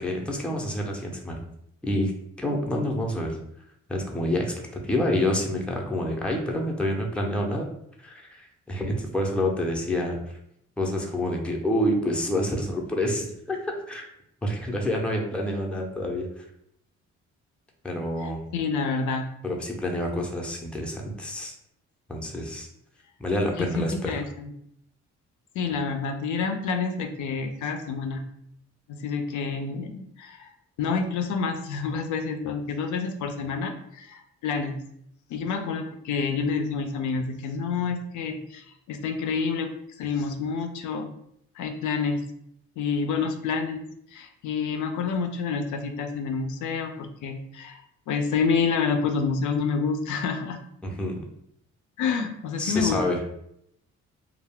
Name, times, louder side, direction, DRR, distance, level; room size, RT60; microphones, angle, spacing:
voice 1, 0.0-1.4 1.8-2.1 2.4-3.4 3.9-4.5 4.8-7.6 8.0-10.4 10.8-13.6 13.9-14.1 14.4-16.5 17.8-18.4 19.4-21.5 22.1-22.7 23.2-24.2 50.8-51.2 52.6-53.2, left 1 dB, 5° left, 0 dB, 0.5 m, -28 dB
voice 2, 18.2-19.3 23.6-24.5 25.6-28.2 28.9-30.5 30.8-34.8 35.3-39.7 40.0-41.1 41.6-42.2 42.8-43.8 44.1-50.6 52.0-53.0, left 5 dB, 75° left, 5 dB, 0.4 m, -28 dB
2.3 x 2.0 x 3.4 m, 0.73 s
cardioid pair, 90°, 30 cm